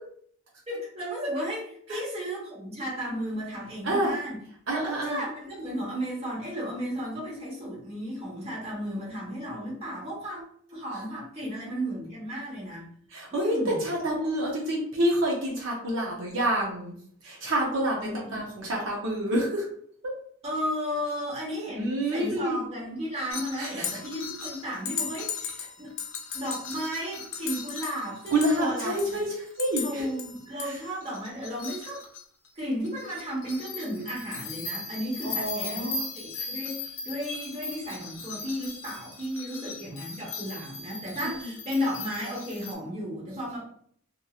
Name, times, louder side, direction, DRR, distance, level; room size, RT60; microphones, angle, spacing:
voice 1, 0.7-4.4 4.7-10.4 10.7-12.8 13.3-13.8 18.0-18.4 20.4-25.9 26.3-29.2 29.7-32.0 32.5-43.7, equal, 30° right, -4 dB, 1.0 m, -34 dB
voice 2, 3.8-4.2 4.7-5.2 13.1-17.0 17.2-19.6 21.7-22.6 23.6-23.9 28.3-29.3 29.6-30.1 30.6-30.8 35.2-36.0 41.4-41.5, right 1 dB, 65° right, -2 dB, 0.6 m, -28 dB
sound 1, 23.3-29.2 29.5-32.5 32.8-42.7, left 5 dB, 70° left, 0.5 m, -38 dB
3.0 x 2.6 x 2.3 m, 0.62 s
head